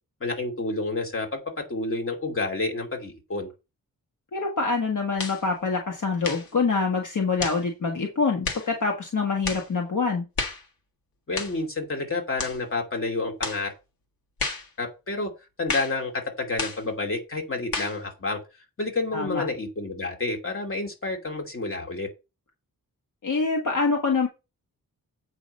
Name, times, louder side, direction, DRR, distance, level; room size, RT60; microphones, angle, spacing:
voice 1, 0.2-3.5 11.3-13.7 14.8-15.3 15.6-18.4 18.8-22.1, left 3 dB, 40° left, 3 dB, 2.7 m, -29 dB
voice 2, 4.3-10.3 19.1-19.4 23.2-24.3, left 4 dB, 60° left, 1 dB, 1.6 m, -25 dB
sound 1, 5.2-5.4 6.2-6.5 7.4-7.6 8.4-8.7 9.4-9.7 10.4-10.7 11.4-11.6 12.4-12.6 13.4-13.6 14.4-14.7 15.7-16.0 16.6-16.8 17.7-18.0, left 3 dB, 85° left, 2.0 m, -31 dB
8.3 x 5.0 x 5.4 m, 0.27 s
wide cardioid pair, 155°, 35 cm